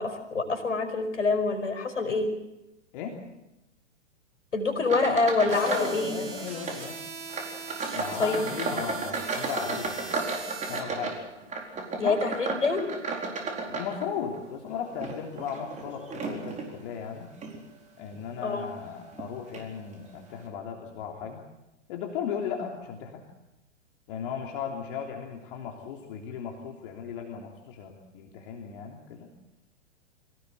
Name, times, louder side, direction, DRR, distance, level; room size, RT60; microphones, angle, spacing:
voice 1, 0.0-2.3 4.5-6.2 8.2-8.5 12.0-12.9 18.4-18.7, left 3 dB, 85° left, 6 dB, 5.2 m, -26 dB
sound 1, 4.8-6.0 6.3-6.8 7.3-14.4 14.9-16.7 17.3-17.6 18.1-18.3 19.1-19.2 19.5-19.7, right 4 dB, 20° right, 4.4 m, -34 dB
voice 2, 5.5-7.0 7.9-10.3 10.7-11.2 12.0-12.2 13.7-17.3 18.0-21.4 21.9-23.2 24.1-29.3, left 7 dB, 45° left, 1 dB, 3.3 m, -36 dB
sound 2, 5.5-10.8, right 4 dB, 70° right, 5.9 m, -41 dB
25.5 x 18.0 x 8.3 m, 0.95 s
hypercardioid pair, 115°, 36 cm